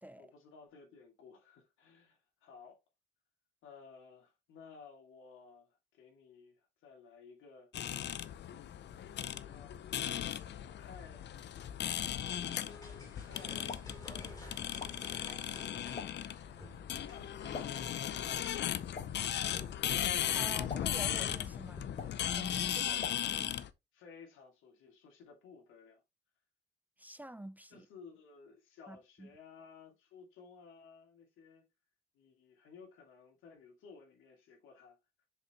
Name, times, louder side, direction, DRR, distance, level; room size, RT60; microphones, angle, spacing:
voice 1, 0.2-2.8 3.6-7.7 8.7-9.8 10.6-11.3 12.4-13.8 17.0-18.7 22.8-23.4 23.9-26.0 27.7-31.6 32.1-35.3, left 5 dB, 90° left, 2.6 m, -57 dB
sound 1, 7.7-23.7, left 10 dB, 60° left, 0.6 m, -37 dB
sound 2, 12.2-21.8, left 1 dB, 20° left, 2.9 m, -53 dB
Explosion, 13.4-23.7, left 4 dB, 35° left, 1.7 m, -52 dB
voice 2, 20.3-21.9 22.4-23.0 27.0-27.9 28.9-29.3, right 1 dB, 10° right, 0.5 m, -48 dB
6.5 x 5.1 x 3.1 m
cardioid pair, 90°, 20 cm